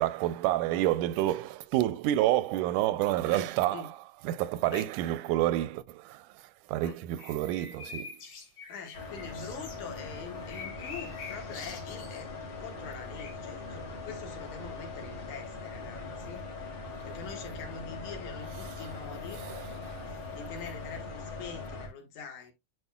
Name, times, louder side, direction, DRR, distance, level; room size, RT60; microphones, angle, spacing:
voice 1, 0.0-4.0 4.2-8.2 19.4-20.1, right 14 dB, 85° right, 2.1 m, -29 dB
voice 2, 3.3-3.9 4.7-4.9 6.8-7.0 8.7-12.3 12.6-16.4 17.0-19.4 20.1-22.5, left 5 dB, 75° left, 3.0 m, -44 dB
sound 1, 7.2-9.8 10.4-12.2 13.1-13.3, left 5 dB, 90° left, 3.9 m, -45 dB
sound 2, 8.9-21.9, left 3 dB, 40° left, 2.0 m, -41 dB
Wind, 10.7-15.6 15.9-16.3 16.7-17.0, left 2 dB, 15° left, 1.3 m, -54 dB
9.9 x 4.8 x 2.3 m
omnidirectional pair, 3.5 m